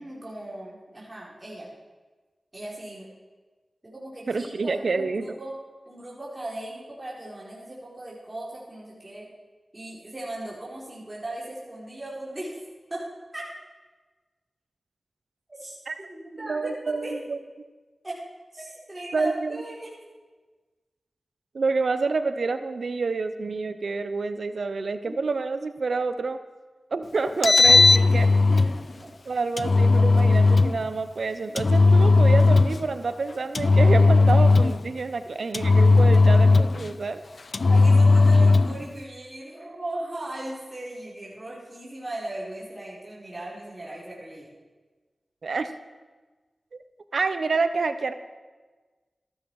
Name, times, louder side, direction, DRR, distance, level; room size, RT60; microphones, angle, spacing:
voice 1, 0.0-1.7 2.5-3.1 3.8-5.5 5.9-9.3 9.7-12.6 12.9-13.1 13.3-13.4 15.5-17.2 18.0-18.2 18.5-19.9 25.1-25.2 28.0-28.1 28.5-28.7 29.0-29.1 37.7-44.5, right 1 dB, 25° right, -6 dB, 4.3 m, -37 dB
voice 2, 4.3-5.4 15.9-16.0 16.3-17.4 19.1-19.6 21.5-26.4 26.9-28.3 29.3-37.2 45.4-45.7 46.7-46.8 47.1-48.1, right 4 dB, 75° right, 11 dB, 0.8 m, -28 dB
Engine, 27.3-28.8 29.6-30.8 31.6-32.8 33.6-34.8 35.5-36.9 37.5-38.8, left 3 dB, 60° left, 0.3 m, -17 dB
14.0 x 12.5 x 4.8 m, 1.3 s
cardioid pair, 40°, 0 cm